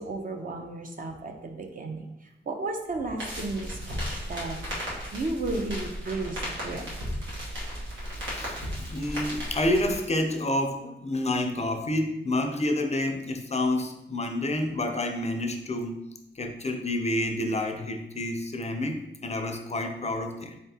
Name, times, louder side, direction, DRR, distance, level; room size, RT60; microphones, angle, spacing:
voice 1, 0.0-2.1 2.5-4.6 5.1-7.0, right 2 dB, 45° right, 3 dB, 0.6 m, -33 dB
sound 1, 3.2-10.0, equal, 90° right, 1.1 m, -35 dB
voice 2, 8.3-16.0 16.4-20.6, left 1 dB, 35° left, 5 dB, 0.5 m, -29 dB
3.6 x 3.4 x 2.8 m, 0.86 s
cardioid pair, 60°, 19 cm